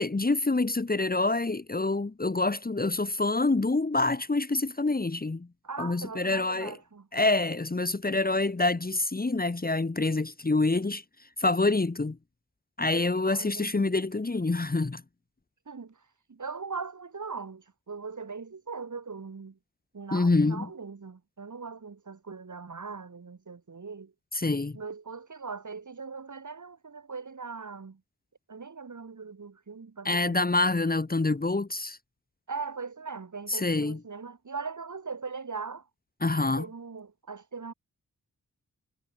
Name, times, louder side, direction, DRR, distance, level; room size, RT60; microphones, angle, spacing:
voice 1, 0.0-5.5 5.8-6.7 7.1-11.0 11.4-12.2 12.8-15.0 20.1-20.7 24.3-24.8 30.0-32.0 33.5-34.0 36.2-36.6, left 3 dB, 25° left, 1.5 m, -26 dB
voice 2, 5.6-7.1 13.2-13.9 15.7-19.6 19.9-24.1 24.7-28.0 28.5-30.5 32.5-35.9 36.6-37.7, right 5 dB, 55° right, 5.4 m, -40 dB
wide cardioid pair, 95°, 35 cm